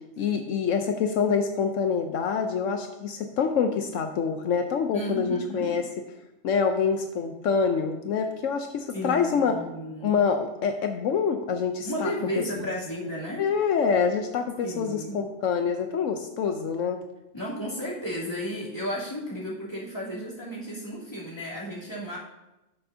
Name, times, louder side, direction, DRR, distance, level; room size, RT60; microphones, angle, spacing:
voice 1, 0.2-5.8 6.4-9.5 10.0-12.1 13.4-17.0, left 6 dB, 80° left, 5 dB, 1.0 m, -26 dB
voice 2, 4.9-5.8 8.9-10.2 11.8-13.5 14.6-15.2 17.3-22.2, equal, 20° left, -8 dB, 3.1 m, -33 dB
17.5 x 6.8 x 2.7 m, 0.99 s
omnidirectional pair, 1.3 m